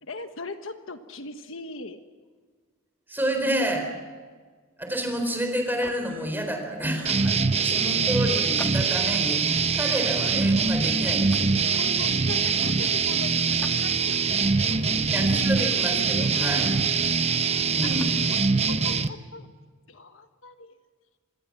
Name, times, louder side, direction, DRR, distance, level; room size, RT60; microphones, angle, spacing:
voice 1, 0.0-2.0 11.7-15.1 16.2-16.7 17.8-18.0 18.3-18.4 18.7-19.5 19.9-20.7, left 3 dB, 65° left, 8 dB, 1.3 m, -40 dB
voice 2, 3.1-3.9 4.8-11.5 15.1-16.7 17.7-18.1, equal, 10° right, 4 dB, 4.3 m, -29 dB
sound 1, 5.8-6.3 8.5-9.3 9.9-10.1 11.3-11.7 13.6-13.8 15.5-16.1 17.8-18.2, left 1 dB, 10° left, 1.6 m, -43 dB
sound 2, 7.1-19.1, right 5 dB, 30° right, 0.9 m, -23 dB
26.0 x 20.0 x 7.6 m, 1.5 s
head